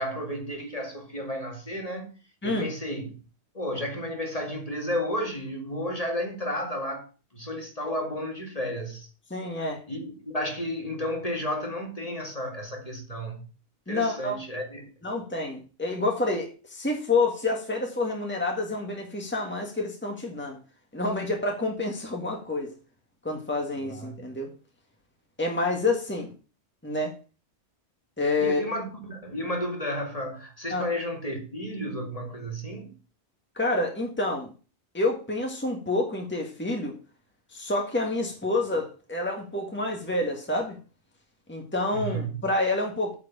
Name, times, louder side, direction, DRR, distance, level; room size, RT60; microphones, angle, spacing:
voice 1, 0.0-2.1 2.4-3.1 3.5-7.1 7.3-9.1 9.9-13.5 13.9-14.9 23.9-24.2 28.4-32.9 41.9-42.3, equal, 35° left, 2.2 m, -32 dB
voice 2, 9.3-9.8 13.9-14.4 15.0-20.6 20.9-22.7 23.2-24.5 25.4-26.3 26.8-27.1 28.2-28.6 30.7-30.9 33.6-34.5 34.9-36.9 37.5-40.8 41.5-43.1, left 2 dB, 10° left, 1.7 m, -28 dB
9.1 x 4.9 x 7.2 m
omnidirectional pair, 1.1 m